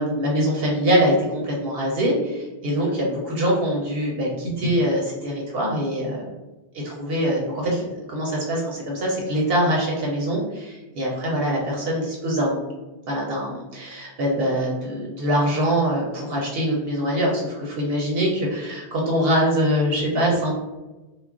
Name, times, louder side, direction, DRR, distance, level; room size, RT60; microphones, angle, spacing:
voice 1, 0.0-6.3 6.8-12.7 13.1-20.5, equal, 65° right, -2 dB, 0.8 m, -23 dB
2.3 x 2.1 x 3.4 m, 1.1 s
omnidirectional pair, 1.1 m